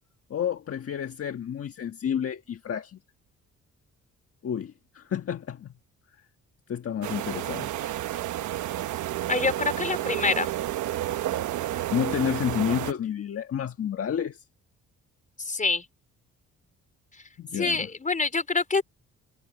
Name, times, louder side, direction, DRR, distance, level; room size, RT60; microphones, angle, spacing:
voice 1, 0.3-3.0 4.4-5.7 6.7-7.7 11.9-14.4 17.4-17.9, left 9 dB, 50° left, 1.5 m, -30 dB
sound 1, 7.0-12.9, right 13 dB, 75° right, 1.1 m, -31 dB
voice 2, 9.3-10.5 15.5-15.8 17.5-18.8, left 4 dB, 25° left, 4.3 m, -26 dB
cardioid pair, 90°, 30 cm